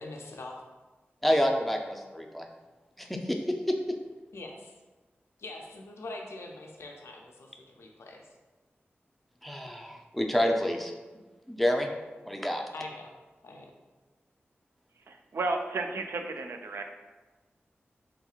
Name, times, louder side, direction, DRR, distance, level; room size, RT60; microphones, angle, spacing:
voice 1, 0.0-0.6 4.3-4.7 5.4-8.2 12.7-13.1 13.4-13.7, left 2 dB, 80° left, 0 dB, 0.4 m, -43 dB
voice 2, 1.2-2.5 3.0-3.8 9.4-10.9 11.5-11.9 12.3-12.6, equal, ahead, 2 dB, 0.4 m, -28 dB
voice 3, 15.1-16.9, right 3 dB, 75° right, 4 dB, 0.3 m, -33 dB
3.5 x 2.8 x 2.4 m, 1.2 s
cardioid pair, 45°, 4 cm